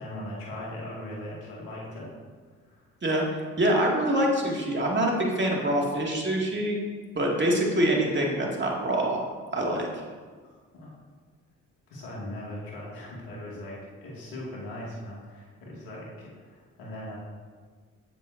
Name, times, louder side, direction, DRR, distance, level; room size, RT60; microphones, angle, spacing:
voice 1, 0.0-2.1 2.6-2.8 10.4-10.9 11.9-17.2, left 1 dB, 80° left, -5 dB, 2.4 m, -39 dB
voice 2, 3.6-6.8 7.1-9.2 9.5-10.0, right 1 dB, 30° right, -2 dB, 2.4 m, -25 dB
9.1 x 7.6 x 2.7 m, 1.5 s
supercardioid pair, 50°, 36 cm